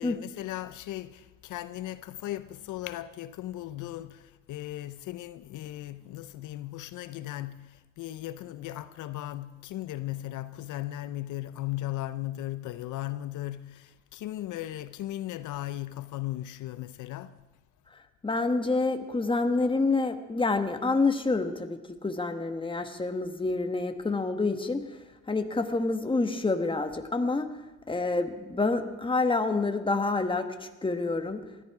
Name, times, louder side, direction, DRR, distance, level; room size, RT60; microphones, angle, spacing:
voice 1, 0.0-17.4, left 14 dB, 80° left, 0.6 m, -37 dB
voice 2, 18.2-25.0 25.3-27.5 27.9-31.4, left 3 dB, 15° left, 1.4 m, -28 dB
20.0 x 13.5 x 4.8 m
cardioid pair, 90°, 30 cm